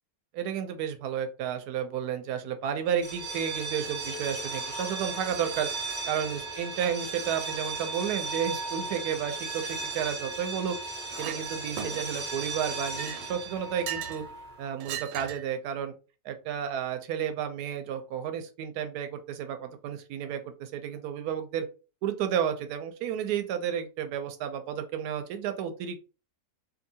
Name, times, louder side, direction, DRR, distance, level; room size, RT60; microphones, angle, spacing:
voice 1, 0.3-5.7 6.1-10.8 11.2-14.2 14.6-15.9 16.2-21.7 22.0-26.0, right 8 dB, 75° right, 8 dB, 1.0 m, -32 dB
sound 1, 3.0-14.7, right 3 dB, 55° right, 0.5 m, -36 dB
Chink clink, 11.1-11.4 11.8-12.3 12.8-14.3 14.8-15.5, right 9 dB, 90° right, 1.3 m, -38 dB
2.6 x 2.6 x 2.7 m, 0.33 s
omnidirectional pair, 1.8 m